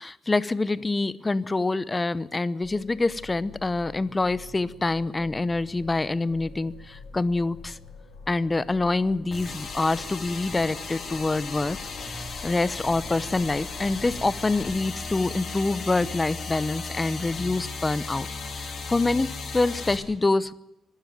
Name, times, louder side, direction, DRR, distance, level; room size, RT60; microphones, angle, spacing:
voice 1, 0.0-7.8 8.3-11.8 12.4-18.3 18.6-20.5, left 3 dB, 20° left, 17 dB, 0.8 m, -26 dB
sound 1, 2.6-14.8, left 4 dB, 70° left, 3.3 m, -47 dB
sound 2, 9.3-20.0, left 4 dB, 45° left, 5.3 m, -36 dB
25.5 x 12.5 x 9.2 m, 0.94 s
cardioid pair, 120°, 0 cm